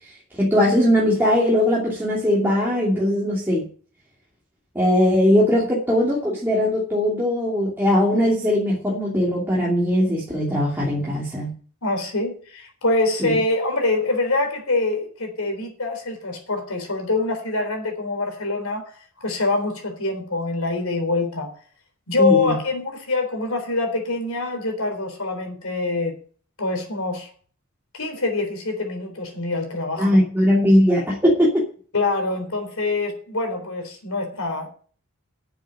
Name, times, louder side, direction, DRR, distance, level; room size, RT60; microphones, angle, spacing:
voice 1, 0.4-3.7 4.7-11.5 13.2-13.4 22.2-22.6 30.0-31.7, left 1 dB, 10° right, 2.7 m, -20 dB
voice 2, 11.8-18.9 19.2-21.5 22.1-26.2 26.6-27.3 27.9-30.2 31.9-34.7, left 3 dB, 90° left, 3.8 m, -25 dB
8.6 x 7.6 x 8.9 m
head